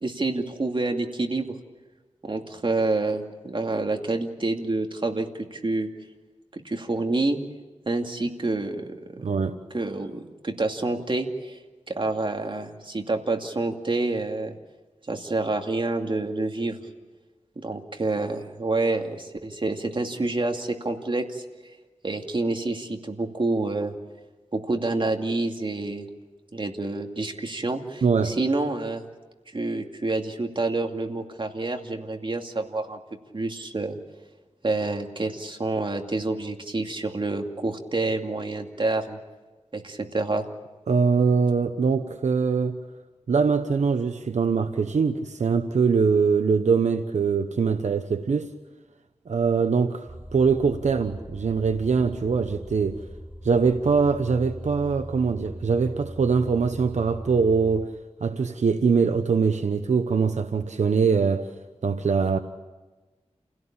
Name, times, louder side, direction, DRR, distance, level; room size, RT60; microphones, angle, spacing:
voice 1, 0.0-1.5 2.2-5.9 6.5-7.4 7.9-8.9 9.2-9.3 9.7-11.6 11.9-14.6 15.1-16.8 17.6-21.4 22.0-23.9 24.5-26.1 26.5-29.0 29.5-33.0 33.3-34.0 34.6-39.2 39.7-40.4, right 2 dB, 45° right, 2.4 m, -28 dB
voice 2, 9.2-9.6 28.0-28.4 40.9-42.8 43.3-48.5 49.3-53.0 53.4-57.9 58.2-61.5 61.8-62.4, right 5 dB, 85° right, 1.0 m, -23 dB
sound 1, 50.1-57.9, right 1 dB, 15° right, 1.9 m, -40 dB
28.5 x 17.0 x 8.8 m
wide cardioid pair, 70°, 12 cm